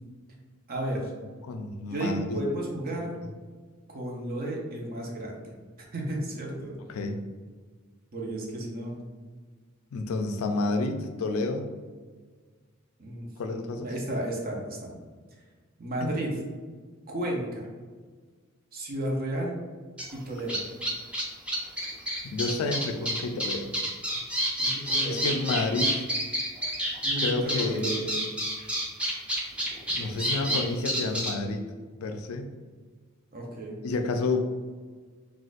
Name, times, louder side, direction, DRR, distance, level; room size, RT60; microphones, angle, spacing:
voice 1, 0.7-1.1 1.9-3.2 3.9-5.5 5.9-6.8 8.1-8.9 13.0-15.0 15.8-16.3 17.1-17.6 18.7-19.6 20.1-20.6 24.6-25.2 27.0-28.2 30.0-30.6 33.3-33.8, right 1 dB, 45° right, -1 dB, 0.7 m, -33 dB
voice 2, 1.4-2.4 6.9-7.2 9.9-11.7 13.4-13.9 16.0-16.1 22.2-23.7 25.1-26.0 27.2-28.0 30.0-31.7 32.0-32.5 33.8-34.4, left 3 dB, 85° left, 6 dB, 0.4 m, -30 dB
sound 1, 20.0-20.1 20.5-31.3, equal, 5° right, 0.5 m, -28 dB
3.9 x 2.4 x 2.4 m, 1.5 s
head